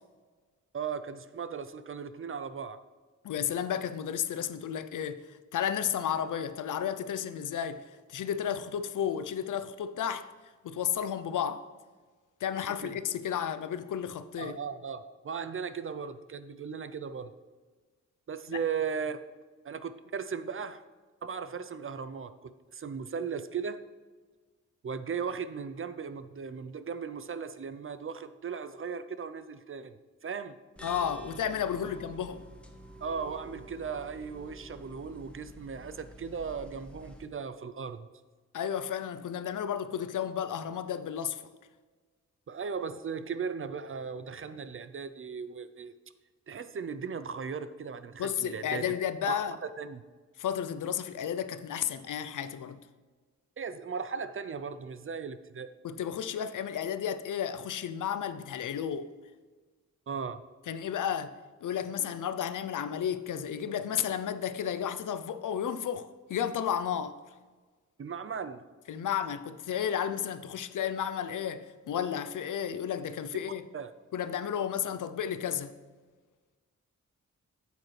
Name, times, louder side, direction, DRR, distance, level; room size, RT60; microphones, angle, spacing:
voice 1, 0.7-2.8 12.8-12.9 14.4-17.3 18.3-19.2 19.6-20.8 21.2-23.8 24.8-29.9 30.2-30.5 31.8-31.9 33.0-38.1 42.5-45.9 46.5-48.8 49.2-49.4 49.8-50.0 53.6-55.7 60.1-60.4 68.0-68.6 73.7-73.9, right 6 dB, 45° right, 0.5 m, -37 dB
voice 2, 3.2-10.3 10.6-11.7 12.4-14.6 18.5-18.6 30.8-32.5 38.5-41.4 48.2-49.6 50.4-52.8 55.8-59.1 60.7-67.2 68.9-73.6 74.1-75.7, left 9 dB, 80° left, 0.5 m, -33 dB
sound 1, 30.8-37.3, right 1 dB, 5° left, 1.1 m, -49 dB
8.5 x 8.3 x 3.3 m
cardioid pair, 75°, 31 cm